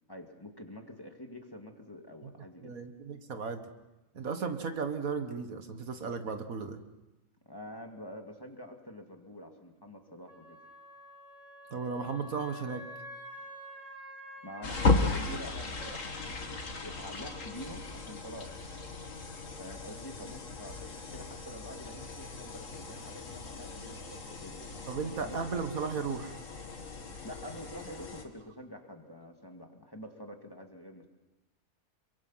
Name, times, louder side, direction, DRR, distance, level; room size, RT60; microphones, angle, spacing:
voice 1, 0.1-2.7 7.5-10.6 14.4-16.0 16.3-18.6 19.6-25.4 27.2-31.1, equal, 15° left, 3 dB, 2.3 m, -47 dB
voice 2, 2.6-3.6 4.1-6.8 11.7-12.8 15.9-16.0 24.9-26.4, right 5 dB, 70° right, 8 dB, 1.9 m, -35 dB
Wind instrument woodwind instrument, 10.3-15.4, right 1 dB, 25° right, 5.3 m, -48 dB
sound 1, 14.6-28.2, left 3 dB, 60° left, 2.2 m, -36 dB
27.0 x 23.0 x 5.7 m, 1.0 s
omnidirectional pair, 1.5 m